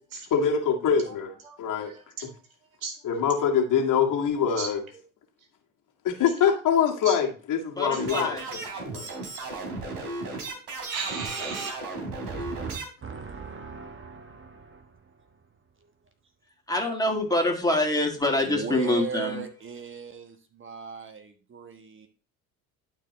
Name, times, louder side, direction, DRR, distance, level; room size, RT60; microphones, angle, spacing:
voice 1, 0.3-1.3 1.6-1.9 3.0-4.8 6.0-8.4 8.9-9.0, left 7 dB, 50° left, 2 dB, 2.0 m, -24 dB
voice 2, 1.4-2.4 2.8-3.0 3.3-3.5 4.5-5.0 5.4-5.5 6.5-6.6 7.0-7.4 7.9-8.2 10.9-11.7, right 5 dB, 85° right, 7 dB, 1.4 m, -37 dB
voice 3, 7.8-8.5 16.7-19.4, left 1 dB, 10° left, 1 dB, 2.5 m, -25 dB
sound 1, 7.9-12.9, right 3 dB, 55° right, 3.3 m, -35 dB
voice 4, 12.3-15.5 15.8-15.9 18.4-22.1, right 6 dB, 30° right, 7 dB, 1.4 m, -39 dB
12.0 x 4.7 x 3.2 m, 0.38 s
hypercardioid pair, 65°, 41 cm